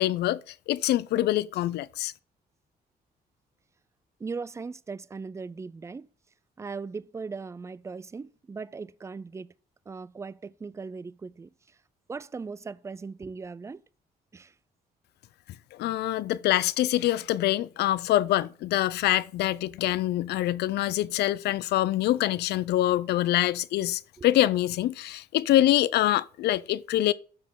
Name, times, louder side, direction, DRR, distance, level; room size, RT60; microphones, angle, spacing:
voice 1, 0.0-2.1 15.8-27.1, left 14 dB, 85° left, 0.5 m, -25 dB
voice 2, 4.2-6.1 6.6-9.5 9.9-11.8 12.1-13.8 14.3-14.5 24.2-24.3, right 4 dB, 15° right, 0.4 m, -39 dB
12.5 x 4.7 x 3.8 m
cardioid pair, 105°, 17 cm